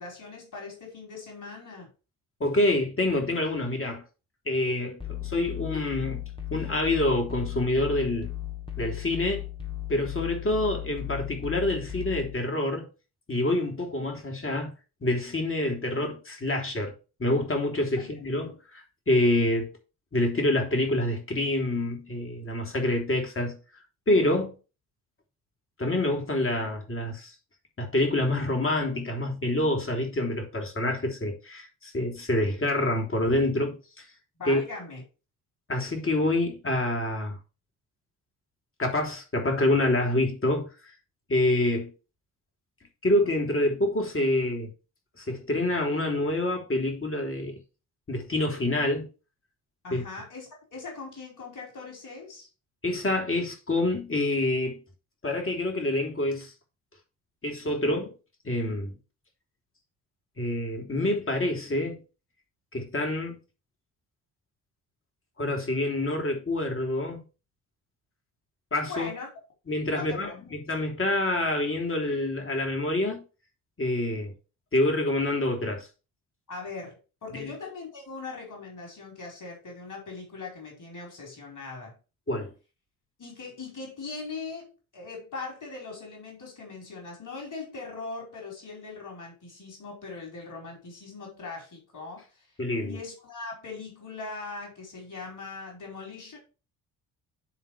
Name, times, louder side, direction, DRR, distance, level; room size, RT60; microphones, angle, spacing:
voice 1, 0.0-1.9 18.0-18.1 34.4-35.0 49.8-52.5 68.9-69.3 69.9-70.5 76.5-82.0 83.2-92.5 92.8-96.4, left 3 dB, 45° left, 4.9 m, -40 dB
voice 2, 2.4-4.0 4.4-6.2 6.5-8.3 8.8-9.5 9.9-12.9 13.3-14.7 15.0-16.9 17.2-19.7 20.1-23.6 24.1-24.6 25.8-27.3 27.8-34.0 34.5-34.6 35.7-37.4 38.8-40.7 41.3-41.9 43.0-44.7 45.2-47.6 48.1-49.1 49.9-50.0 52.8-54.8 55.2-56.5 57.4-58.1 58.4-58.9 60.4-62.0 62.7-63.4 65.4-67.2 68.7-69.1 69.7-73.2 73.8-74.3 74.7-75.9 77.3-77.5 82.3-82.5 92.6-93.0, left 1 dB, 30° left, 3.2 m, -27 dB
sound 1, 5.0-12.4, left 12 dB, 10° left, 2.0 m, -36 dB
10.5 x 3.7 x 4.9 m
hypercardioid pair, 45°, 42 cm